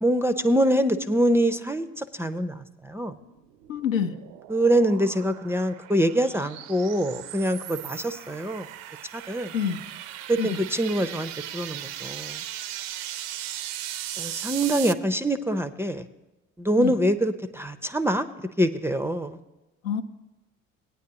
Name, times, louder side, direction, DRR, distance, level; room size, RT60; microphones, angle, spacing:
voice 1, 0.0-3.2 4.5-8.7 9.1-9.5 10.3-12.4 14.2-16.1 16.6-18.3 18.6-19.4, right 1 dB, 5° right, 11 dB, 0.4 m, -24 dB
sound 1, 3.2-14.9, right 12 dB, 65° right, 0.5 m, -38 dB
voice 2, 3.7-4.1 9.5-9.8 10.4-10.6 16.8-16.9 19.8-20.0, left 8 dB, 80° left, 7 dB, 0.6 m, -26 dB
17.5 x 9.3 x 2.9 m, 1.1 s
figure-of-eight pair, 55°, 39 cm